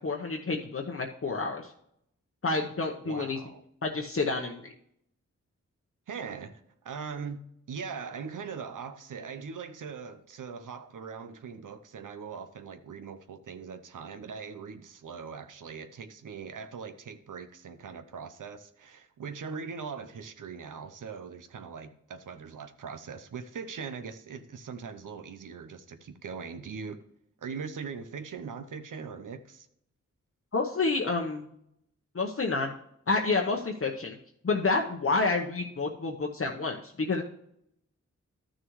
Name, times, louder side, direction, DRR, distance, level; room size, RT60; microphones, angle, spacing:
voice 1, 0.0-1.7 2.4-3.4 3.8-4.7 30.5-31.5 32.1-32.7 33.1-34.2 34.4-37.2, left 3 dB, 45° left, 0.9 m, -29 dB
voice 2, 3.0-3.6 6.1-7.4 7.7-27.0 27.4-29.7, right 5 dB, 80° right, 0.7 m, -41 dB
12.5 x 6.4 x 3.1 m
cardioid pair, 55°, 31 cm